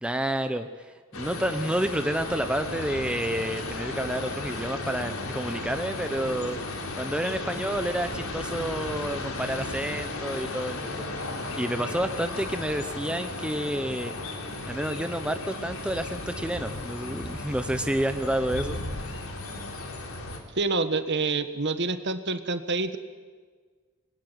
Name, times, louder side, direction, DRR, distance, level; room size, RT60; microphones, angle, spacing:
voice 1, 0.0-6.6 7.0-14.1 14.6-18.8, right 1 dB, 5° right, 8 dB, 0.8 m, -30 dB
sound 1, 1.1-20.4, left 2 dB, 75° left, 3.7 m, -35 dB
sound 2, 4.0-19.9, left 1 dB, 45° left, 7.0 m, -45 dB
voice 2, 20.5-23.0, right 3 dB, 50° right, 10 dB, 1.6 m, -27 dB
26.0 x 22.0 x 9.4 m, 1.5 s
head